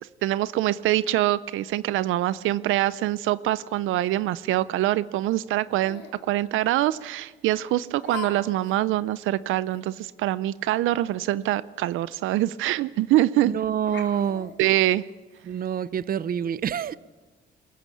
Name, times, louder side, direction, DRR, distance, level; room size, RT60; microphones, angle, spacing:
voice 1, 0.2-13.5 14.6-15.0, right 15 dB, 85° right, 0.5 m, -24 dB
Laughter, 5.8-6.2 7.0-7.1 8.0-8.3 8.6-8.7 9.2-9.3 9.7-9.8 11.8-11.9 12.1-12.2 13.2-13.4 13.8-15.4, left 7 dB, 65° left, 3.9 m, -40 dB
voice 2, 13.4-14.5 15.4-17.0, right 8 dB, 45° right, 0.7 m, -27 dB
22.5 x 14.5 x 8.5 m
cardioid pair, 90°, 20 cm